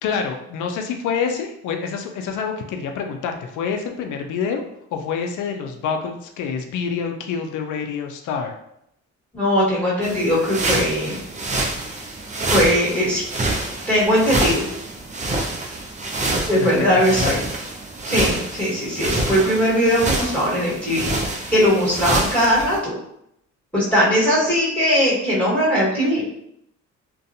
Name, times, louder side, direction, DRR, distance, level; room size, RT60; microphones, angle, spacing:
voice 1, 0.0-4.6 4.9-8.5 16.5-16.7 17.1-17.3, left 6 dB, 80° left, 4 dB, 0.5 m, -27 dB
voice 2, 9.3-11.2 12.5-13.2 13.9-14.6 16.5-17.4 18.0-21.1 21.5-22.9 23.7-26.2, equal, 5° left, -8 dB, 1.4 m, -19 dB
sound 1, 10.0-22.8, right 2 dB, 25° right, 0.5 m, -26 dB
2.5 x 2.2 x 2.7 m, 0.77 s
cardioid pair, 90°, 30 cm